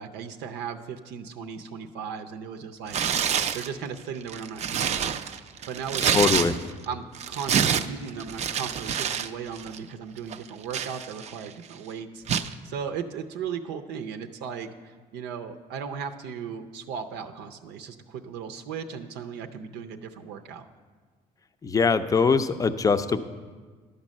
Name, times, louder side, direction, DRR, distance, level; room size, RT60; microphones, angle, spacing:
voice 1, 0.0-5.1 5.6-6.5 6.9-20.7, right 6 dB, 90° right, 5 dB, 0.6 m, -37 dB
Tearing, 2.9-3.7 4.2-6.8 7.1-9.3 9.6-9.8 10.3-11.5 12.3-12.5, right 8 dB, 40° right, 0.4 m, -27 dB
voice 2, 6.1-6.5 21.6-23.2, left 5 dB, 20° left, 10 dB, 0.5 m, -22 dB
11.5 x 5.3 x 7.3 m, 1.5 s
cardioid pair, 110°, 17 cm